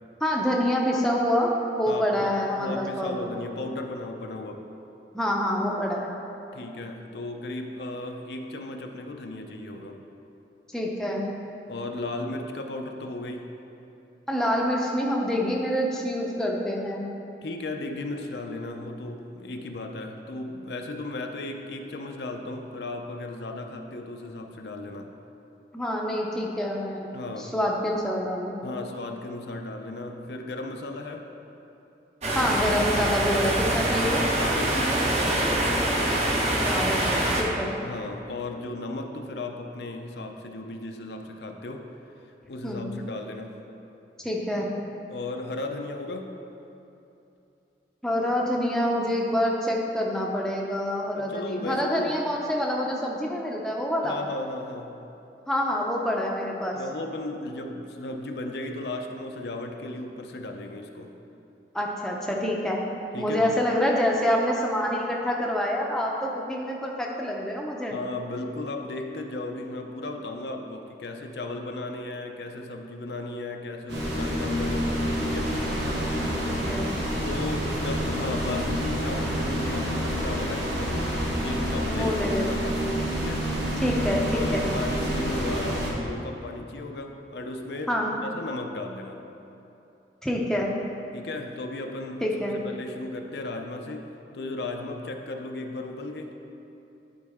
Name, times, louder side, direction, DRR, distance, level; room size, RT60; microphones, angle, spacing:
voice 1, 0.2-3.3 5.1-6.1 10.7-11.3 14.3-17.0 25.7-27.1 27.4-28.7 32.3-34.3 36.6-37.7 42.6-42.9 44.2-44.7 48.0-54.2 55.5-56.8 61.7-62.8 63.2-68.0 76.2-76.9 81.9-82.7 83.8-84.7 87.9-88.1 90.2-90.7 92.2-92.6, equal, 5° left, -2 dB, 0.6 m, -27 dB
voice 2, 1.9-4.6 6.5-10.0 11.7-13.5 17.4-25.1 27.1-27.5 28.6-31.3 34.4-35.7 37.8-41.9 42.5-43.6 45.1-46.4 51.2-52.2 54.0-55.0 56.7-61.1 63.1-63.5 67.9-75.6 77.2-82.8 83.1-83.5 84.3-89.3 91.1-92.3 92.6-96.3, left 2 dB, 70° left, 3 dB, 0.5 m, -35 dB
sound 1, 32.2-37.4, right 1 dB, 40° right, 0.8 m, -24 dB
sound 2, 73.9-85.9, equal, 85° right, 1.5 m, -28 dB
11.0 x 4.4 x 3.6 m, 2.8 s
head